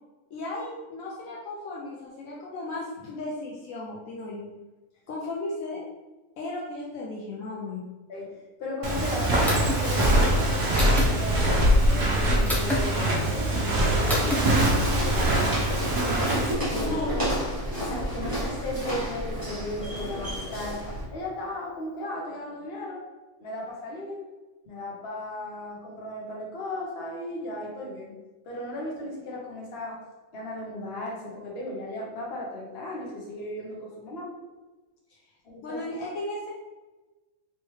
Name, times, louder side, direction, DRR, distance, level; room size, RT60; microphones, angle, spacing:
voice 1, 0.3-4.5 5.1-5.9 6.4-7.9 16.8-17.3 35.1-35.2 35.6-36.5, left 2 dB, 70° left, -4 dB, 1.0 m, -35 dB
voice 2, 8.1-15.4 16.0-17.0 17.8-20.8 21.1-23.0 23.4-24.2 24.6-28.1 28.4-30.0 30.3-34.3 35.4-35.8, left 1 dB, 50° left, -3 dB, 1.0 m, -36 dB
Walk footsteps, 8.8-16.5, right 1 dB, 50° right, 0.6 m, -23 dB
sound 1, 9.5-9.8 10.7-11.1 12.5-12.8 14.1-14.4, left 1 dB, ahead, 0.6 m, -27 dB
Walk footsteps 2, 14.3-21.0, equal, 15° right, 1.1 m, -31 dB
3.3 x 3.1 x 3.1 m, 1.2 s
omnidirectional pair, 1.5 m